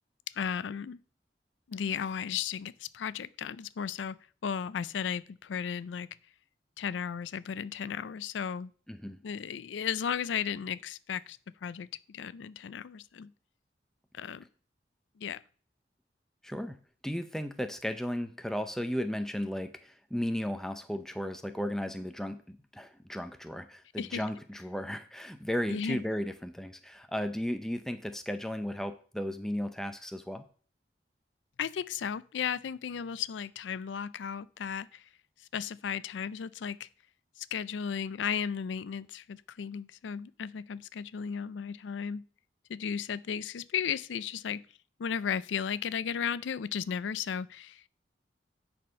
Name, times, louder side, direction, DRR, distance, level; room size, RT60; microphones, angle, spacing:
voice 1, 0.3-1.0 1.7-6.1 6.8-8.7 9.2-13.3 14.1-14.4 15.2-15.4 24.0-24.2 25.7-26.0 31.6-35.1 35.4-36.9 37.4-42.2 42.7-44.6 45.0-47.9, left 7 dB, 85° left, 0.4 m, -35 dB
voice 2, 8.9-9.2 16.4-30.4, equal, 5° left, 0.5 m, -35 dB
9.3 x 4.4 x 5.5 m
head